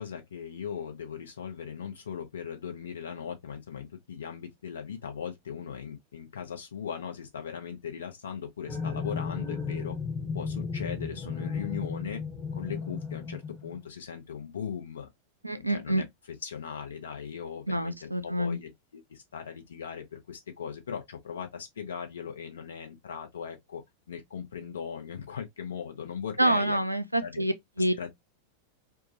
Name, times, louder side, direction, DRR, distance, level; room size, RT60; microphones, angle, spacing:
voice 1, 0.0-9.9 10.3-12.2 12.5-15.1 15.5-16.1 16.4-23.8 24.1-26.8 27.2-27.4 28.0-28.1, left 7 dB, 65° left, 0.7 m, -39 dB
sound 1, 8.7-13.8, left 5 dB, 10° left, 0.7 m, -34 dB
voice 2, 15.4-16.0 17.7-18.6 26.4-27.9, right 1 dB, 85° right, 0.3 m, -27 dB
2.3 x 2.0 x 2.7 m
figure-of-eight pair, 90°, 0 cm